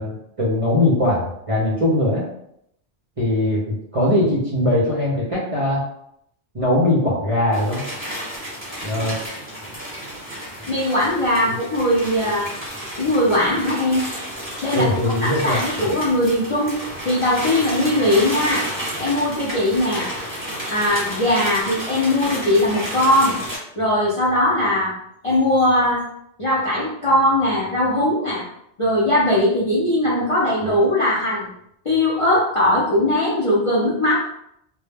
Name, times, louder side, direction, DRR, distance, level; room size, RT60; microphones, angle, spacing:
voice 1, 0.0-2.2 3.2-5.8 6.5-7.8 8.8-9.2 11.5-11.6 14.7-15.6, left 1 dB, 40° right, -5 dB, 0.5 m, -20 dB
sound 1, 7.5-23.6, equal, 10° right, 0.9 m, -31 dB
voice 2, 10.7-12.5 13.0-14.1 14.6-14.9 15.2-16.7 17.0-18.7 19.0-20.1 20.7-23.4 23.8-24.9 25.2-26.0 26.4-28.4 28.8-31.5 31.8-34.1, left 1 dB, 45° left, -7 dB, 0.4 m, -19 dB
2.1 x 2.1 x 3.3 m, 0.75 s
omnidirectional pair, 1.2 m